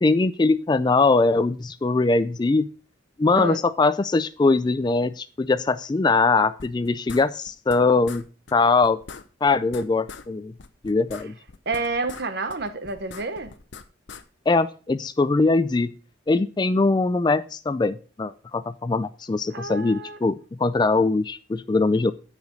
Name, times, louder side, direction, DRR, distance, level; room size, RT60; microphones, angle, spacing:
voice 1, 0.0-2.7 3.2-8.2 8.5-9.0 9.4-10.5 10.8-11.3 14.5-15.9 16.3-22.1, left 3 dB, 20° left, 0.3 m, -21 dB
sound 1, 6.6-7.8 8.1-8.2 8.5-8.6 8.8-10.3 10.6-12.2 12.5-14.2, left 5 dB, 65° left, 0.7 m, -41 dB
voice 2, 11.7-13.5 19.5-20.2, right 3 dB, 55° right, 1.0 m, -29 dB
9.2 x 5.1 x 5.2 m
head